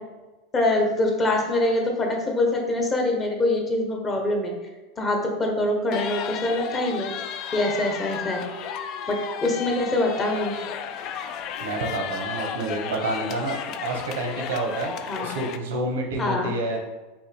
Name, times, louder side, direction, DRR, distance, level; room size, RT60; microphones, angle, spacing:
voice 1, 0.5-4.5 5.0-7.1 7.5-8.4 9.1-10.6 15.1-15.3 16.2-16.5, left 2 dB, 25° left, 1 dB, 0.9 m, -24 dB
sound 1, 5.9-15.6, left 8 dB, 50° left, 0.3 m, -33 dB
voice 2, 11.6-14.9 15.2-16.8, right 2 dB, 90° right, 2 dB, 1.0 m, -28 dB
5.3 x 2.7 x 3.3 m, 1.1 s
supercardioid pair, 120°, 0 cm